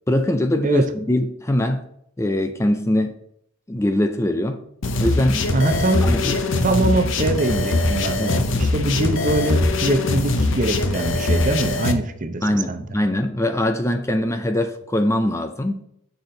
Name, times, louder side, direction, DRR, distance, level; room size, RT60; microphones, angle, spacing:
voice 1, 0.1-1.8 2.2-3.2 3.7-4.6 5.0-5.5 6.1-6.3 8.2-8.3 12.4-15.8, left 1 dB, 15° left, 0.4 m, -22 dB
sound 1, 4.8-11.9, left 2 dB, 60° left, 0.8 m, -22 dB
voice 2, 5.5-6.3 6.6-12.8, right 2 dB, 40° right, 0.7 m, -23 dB
7.0 x 6.0 x 3.8 m
head